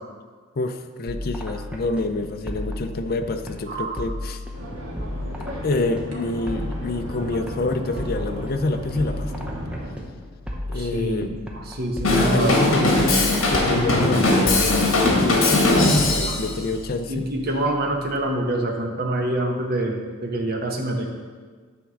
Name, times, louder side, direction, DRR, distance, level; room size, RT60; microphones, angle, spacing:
voice 1, 0.6-4.4 5.4-9.3 10.7-11.3 12.1-13.2 13.5-17.3, left 2 dB, 45° left, 7 dB, 0.5 m, -27 dB
sound 1, 1.1-18.7, left 1 dB, 5° right, 0.7 m, -35 dB
voice 2, 3.7-4.0 10.7-12.7 16.3-16.4 17.1-21.1, right 1 dB, 45° right, 1 dB, 1.1 m, -26 dB
sound 2, 4.5-9.9, equal, 65° right, 1.5 m, -35 dB
Drum kit / Drum, 12.0-16.5, left 2 dB, 70° left, 1.6 m, -19 dB
9.6 x 3.5 x 6.2 m, 1.5 s
head